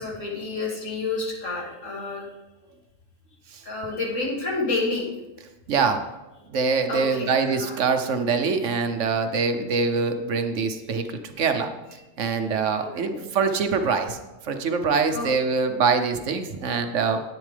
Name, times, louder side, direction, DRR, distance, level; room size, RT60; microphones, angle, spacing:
voice 1, 0.0-2.3 3.7-5.1 6.9-7.8 12.8-13.2 15.1-15.4 15.6-15.7, left 3 dB, 75° left, -2 dB, 2.6 m, -29 dB
voice 2, 5.7-6.0 6.5-14.2 14.4-17.2, right 5 dB, 70° right, 7 dB, 1.1 m, -24 dB
10.5 x 9.1 x 3.4 m, 1.0 s
omnidirectional pair, 1.4 m